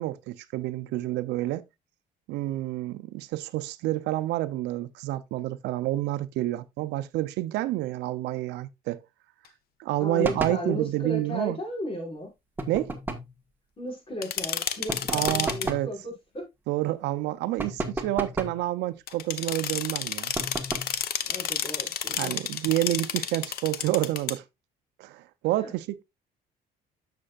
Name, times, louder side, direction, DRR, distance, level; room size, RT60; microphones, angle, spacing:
voice 1, 0.0-1.7 2.3-9.0 9.8-11.6 12.7-12.9 15.1-15.9 16.7-20.3 22.2-24.4 25.0-26.0, right 16 dB, 85° right, 0.6 m, -29 dB
voice 2, 10.0-12.3 13.8-16.4 21.3-22.3 25.6-25.7, equal, 35° left, 5.6 m, -35 dB
sound 1, 10.2-10.7 12.6-13.4 14.9-15.9 17.6-18.6 20.4-21.0, right 2 dB, 10° right, 1.4 m, -33 dB
sound 2, 14.2-15.7 19.1-24.3, left 10 dB, 65° left, 0.9 m, -31 dB
9.9 x 6.7 x 2.4 m
cardioid pair, 110°, 17 cm